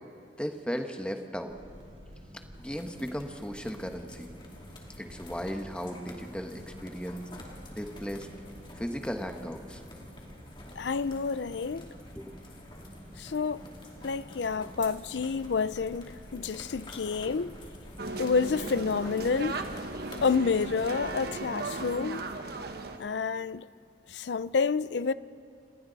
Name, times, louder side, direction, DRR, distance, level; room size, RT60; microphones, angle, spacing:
voice 1, 0.4-1.5 2.6-4.4 5.0-7.2 7.7-8.3 8.8-9.8 12.1-12.4 12.8-12.9, equal, 5° left, 1.3 m, -36 dB
sound 1, 1.5-21.4, equal, 30° right, 5.0 m, -50 dB
sound 2, 2.5-20.4, left 1 dB, 30° left, 2.8 m, -49 dB
voice 2, 10.8-11.9 13.2-13.6 14.0-17.5 18.2-19.5 20.2-22.2 23.0-23.7 24.1-25.1, left 5 dB, 75° left, 0.5 m, -29 dB
sound 3, 18.0-23.0, right 3 dB, 60° right, 1.3 m, -37 dB
30.0 x 27.5 x 4.1 m
head